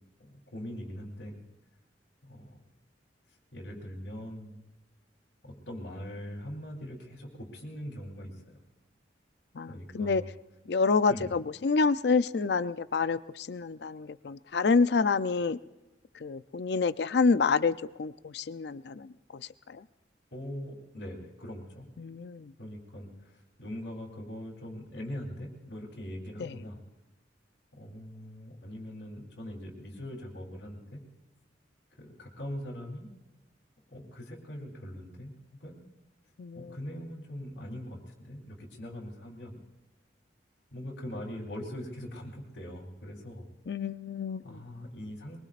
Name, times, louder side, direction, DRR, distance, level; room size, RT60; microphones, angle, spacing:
voice 1, 0.2-1.4 2.2-2.6 3.5-4.6 5.4-8.6 9.7-10.3 11.1-11.3 20.3-21.9 22.6-26.8 27.7-31.0 32.0-33.1 33.9-35.8 36.5-39.6 40.7-43.5 44.4-45.4, equal, 90° left, -4 dB, 3.4 m, -42 dB
voice 2, 9.6-10.2 10.7-15.6 16.2-19.8 22.0-22.5 26.4-26.5 36.4-36.8 43.7-44.6, left 4 dB, 65° left, 14 dB, 0.5 m, -28 dB
23.0 x 22.5 x 2.5 m, 1.1 s
head